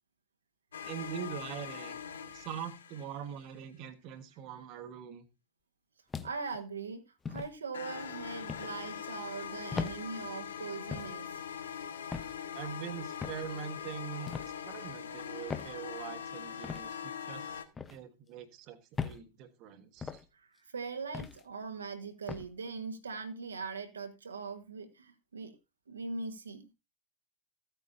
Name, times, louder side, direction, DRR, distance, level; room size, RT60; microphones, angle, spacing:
sound 1, 0.7-3.5 7.7-17.6, left 8 dB, 65° left, 1.4 m, -42 dB
voice 1, 0.8-2.0 2.3-5.3 12.5-14.3 14.6-17.6 17.9-20.2, right 8 dB, 40° right, 1.4 m, -43 dB
sound 2, 6.1-6.6 7.3-7.5 8.5-8.7 9.7-10.0 10.9-11.2 12.1-12.4 13.2-13.5 14.3-14.5 15.5-15.7 16.6-16.8 17.8-18.0 19.0-19.2 20.0-20.2 21.1-21.4 22.3-22.5, left 5 dB, 15° left, 0.9 m, -38 dB
voice 2, 6.2-11.4 20.3-25.6 25.9-26.7, right 4 dB, 70° right, 1.5 m, -41 dB
15.0 x 9.0 x 2.7 m
figure-of-eight pair, 90°, 0 cm